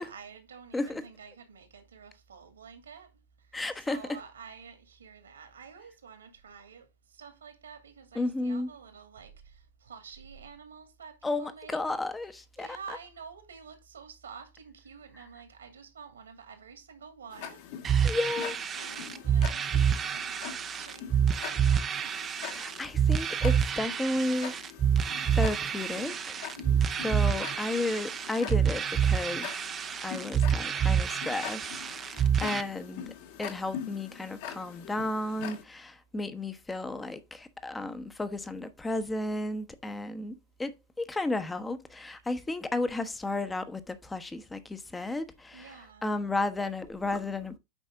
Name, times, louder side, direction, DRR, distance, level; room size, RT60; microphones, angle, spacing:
voice 1, 0.0-3.1 3.7-11.8 12.6-17.6 18.3-22.2 26.6-27.1 32.1-32.6 42.4-42.6 45.5-46.1, right 6 dB, 70° right, 2.3 m, -49 dB
voice 2, 3.5-4.0 8.1-8.7 11.2-13.0 18.0-18.6 22.5-24.5 25.3-26.4 27.0-29.5 30.0-31.6 32.0-33.1 33.4-45.7 46.0-47.6, left 2 dB, 10° left, 1.1 m, -33 dB
Tick-tock, 17.3-35.6, left 9 dB, 50° left, 2.0 m, -44 dB
sound 1, 17.8-32.6, right 8 dB, 25° right, 0.8 m, -28 dB
9.1 x 5.4 x 3.7 m
figure-of-eight pair, 90°, 0 cm